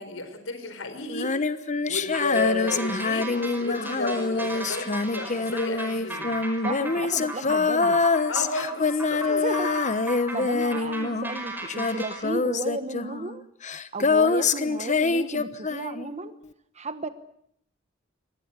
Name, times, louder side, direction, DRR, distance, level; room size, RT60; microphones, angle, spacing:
voice 1, 0.0-1.4 1.9-6.3 8.3-9.3, left 2 dB, 75° left, 8 dB, 4.6 m, -32 dB
Female singing, 1.1-11.4 11.7-16.1, left 4 dB, 40° left, 1.0 m, -25 dB
sound 1, 2.1-12.2, right 1 dB, 10° right, 4.9 m, -36 dB
voice 2, 6.6-8.0 9.3-9.7 10.1-13.4 13.9-16.3 16.7-17.1, right 2 dB, 35° right, 11 dB, 1.3 m, -34 dB
24.5 x 18.5 x 8.3 m, 0.70 s
head